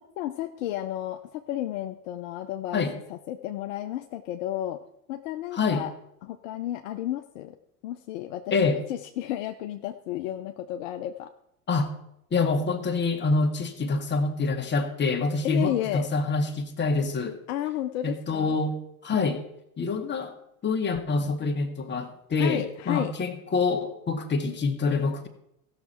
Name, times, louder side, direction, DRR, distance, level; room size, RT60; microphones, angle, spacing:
voice 1, 0.2-2.8 3.1-4.8 5.1-5.9 6.2-7.6 7.8-11.3 15.4-16.1 17.5-18.6 22.4-23.1, left 13 dB, 60° left, 6 dB, 0.7 m, -32 dB
voice 2, 5.5-5.8 8.5-8.8 11.7-11.9 12.3-17.4 18.0-18.8 19.0-19.4 19.8-20.3 20.6-25.3, left 4 dB, 25° left, 4 dB, 1.6 m, -26 dB
16.0 x 6.6 x 4.3 m, 0.78 s
hypercardioid pair, 80°, 45 cm